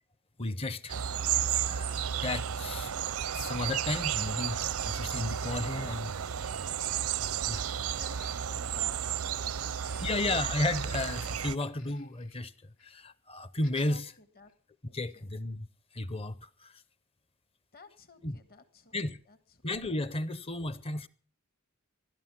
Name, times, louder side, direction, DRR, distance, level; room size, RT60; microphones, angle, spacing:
voice 1, 0.4-1.0 1.3-2.9 3.3-6.1 7.5-7.6 10.0-12.5 12.8-14.0 14.9-15.7 15.9-16.7 18.2-18.3 18.9-19.2 19.6-21.1, left 2 dB, 25° left, 0.7 m, -33 dB
sound 1, 0.9-11.6, right 9 dB, 85° right, 0.6 m, -33 dB
voice 2, 5.4-6.7 7.4-10.9 13.9-14.5 14.9-15.3 17.7-19.6, left 3 dB, 45° left, 1.6 m, -56 dB
sound 2, 8.0-8.8 9.7-12.5 12.8-13.0 13.6-13.9 14.5-14.6, left 6 dB, 75° left, 2.2 m, -58 dB
16.5 x 12.0 x 5.9 m
head